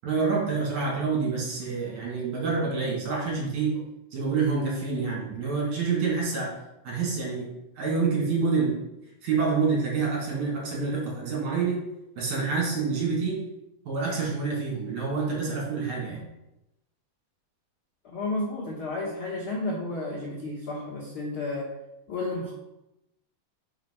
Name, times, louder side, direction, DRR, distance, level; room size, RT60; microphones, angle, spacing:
voice 1, 0.0-3.8 4.1-6.5 6.8-7.5 7.8-8.8 9.2-11.8 12.2-13.4 13.9-16.2, right 4 dB, 55° right, -3 dB, 2.9 m, -27 dB
voice 2, 18.1-21.7 22.1-22.5, left 2 dB, 85° left, -5 dB, 1.2 m, -32 dB
5.7 x 4.4 x 5.4 m, 0.92 s
omnidirectional pair, 4.3 m